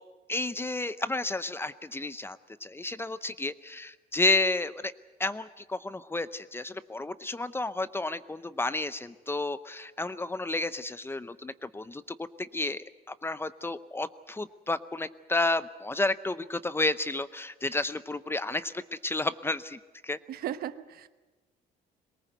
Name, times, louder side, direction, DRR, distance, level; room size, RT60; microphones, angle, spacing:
voice 1, 0.3-4.9 5.2-12.0 12.4-12.8 13.2-18.7 19.0-20.2, left 2 dB, 15° left, 15 dB, 0.6 m, -31 dB
voice 2, 20.3-21.1, right 11 dB, 65° right, 12 dB, 1.0 m, -36 dB
22.5 x 19.0 x 8.1 m, 1.2 s
cardioid pair, 110°, 17 cm